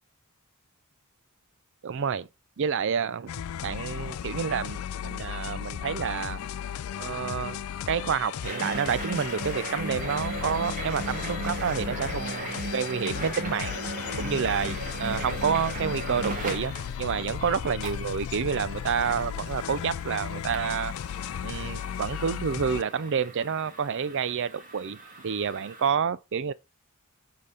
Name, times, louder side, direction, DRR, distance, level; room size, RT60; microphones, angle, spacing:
voice 1, 1.8-2.3 2.6-6.4 7.0-7.6 7.9-13.8 14.2-16.7 17.0-20.9 21.4-26.5, right 6 dB, 60° right, 0.5 m, -29 dB
sound 1, 3.3-22.8, left 9 dB, 70° left, 0.3 m, -35 dB
sound 2, 8.4-25.9, right 2 dB, 40° right, 2.0 m, -38 dB
sound 3, 8.6-18.7, right 2 dB, 75° right, 2.2 m, -56 dB
7.4 x 4.1 x 5.0 m
head